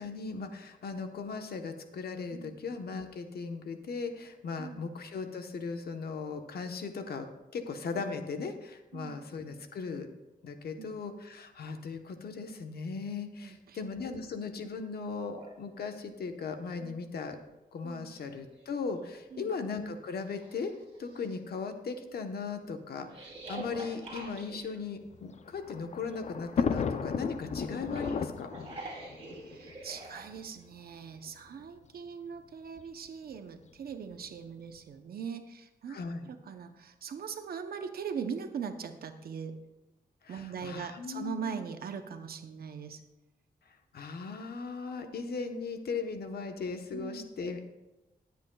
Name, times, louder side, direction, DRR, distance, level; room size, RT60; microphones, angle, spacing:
voice 1, 0.0-10.1 10.4-17.4 17.7-20.7 21.0-28.5 35.9-36.3 40.2-41.6 43.7-47.6, left 4 dB, 80° left, 6 dB, 1.0 m, -38 dB
voice 2, 13.4-13.8 16.8-17.0 17.8-18.1 19.3-19.5 29.3-39.6 40.3-43.0 46.9-47.3, right 6 dB, 75° right, 7 dB, 0.7 m, -41 dB
sound 1, 15.3-15.5 17.3-17.4 17.9-18.9 19.5-19.6 20.2-21.3 23.1-24.9 27.7-30.3, right 2 dB, 40° right, 2.7 m, -45 dB
Thunder, 25.1-30.4 31.3-31.4 31.6-31.7 32.8-33.1, left 6 dB, 45° left, 0.5 m, -34 dB
20.0 x 8.1 x 2.3 m, 1.0 s
wide cardioid pair, 140°, 16 cm